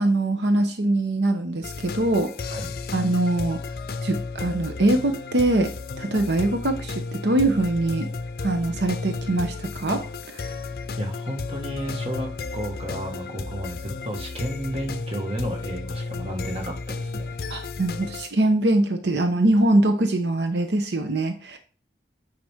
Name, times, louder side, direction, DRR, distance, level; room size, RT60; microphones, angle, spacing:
voice 1, 0.0-2.6 2.9-3.6 4.0-5.7 6.0-8.1 8.4-10.0 10.3-10.6 17.5-21.6, right 2 dB, 80° right, 6 dB, 0.8 m, -23 dB
sound 1, 1.6-18.3, left 3 dB, 55° left, 0.5 m, -33 dB
voice 2, 11.0-17.4, equal, 35° right, 1 dB, 1.7 m, -32 dB
9.0 x 5.0 x 3.6 m, 0.39 s
head